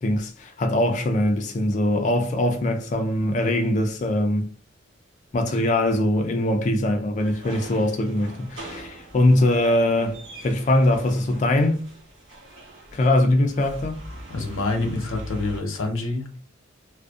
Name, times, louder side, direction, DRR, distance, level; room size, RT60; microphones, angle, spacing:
voice 1, 0.0-4.5 5.3-11.8 12.9-14.0, left 1 dB, 35° left, 0.3 m, -22 dB
sound 1, 7.2-15.6, equal, 75° right, 0.9 m, -41 dB
voice 2, 14.3-16.4, left 2 dB, 75° left, 0.6 m, -27 dB
2.5 x 2.1 x 2.3 m
head